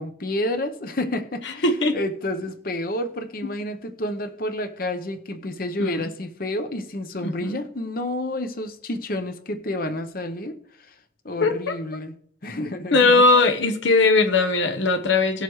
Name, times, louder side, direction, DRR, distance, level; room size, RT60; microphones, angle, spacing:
voice 1, 0.0-1.7 1.9-10.9 11.2-12.1 12.4-13.2, left 1 dB, 45° left, 8 dB, 0.8 m, -30 dB
voice 2, 1.6-2.0 5.8-6.0 7.2-7.6 11.4-11.7 12.9-15.4, left 3 dB, 70° left, 6 dB, 1.0 m, -19 dB
17.5 x 6.6 x 3.2 m, 0.64 s
head